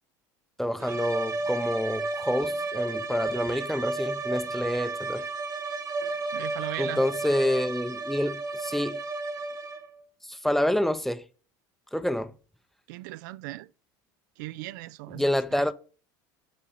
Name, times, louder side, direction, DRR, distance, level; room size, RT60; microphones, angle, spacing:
voice 1, 0.6-5.2 6.8-9.0 10.3-11.2 11.9-12.3 15.1-15.7, left 1 dB, 5° left, 0.4 m, -28 dB
sound 1, 0.8-10.0, right 3 dB, 30° right, 1.3 m, -32 dB
voice 2, 6.3-7.0 12.9-13.7 14.4-15.7, right 18 dB, 85° right, 0.3 m, -38 dB
6.0 x 5.5 x 4.0 m
supercardioid pair, 125°, 10 cm